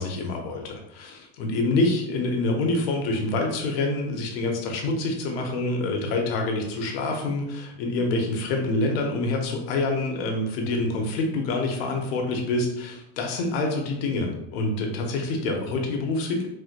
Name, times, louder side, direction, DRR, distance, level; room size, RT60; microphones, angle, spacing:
voice 1, 0.0-16.5, left 2 dB, 65° left, 2 dB, 0.8 m, -26 dB
4.4 x 2.1 x 2.5 m, 0.82 s
supercardioid pair, 175°, 33 cm